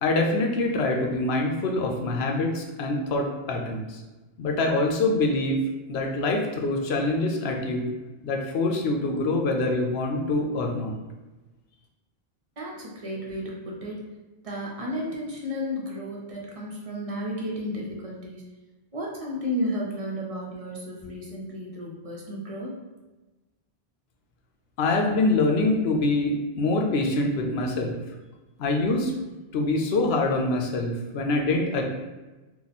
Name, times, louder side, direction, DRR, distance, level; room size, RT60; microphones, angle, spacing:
voice 1, 0.0-4.0 4.4-5.6 5.9-7.9 8.2-10.9 24.8-27.9 28.6-29.1 29.5-31.8, left 2 dB, 85° left, 1 dB, 0.9 m, -25 dB
voice 2, 12.6-14.0 14.4-18.4 18.9-22.7, equal, 40° right, -3 dB, 0.7 m, -33 dB
2.9 x 2.3 x 4.0 m, 1.1 s
omnidirectional pair, 1.0 m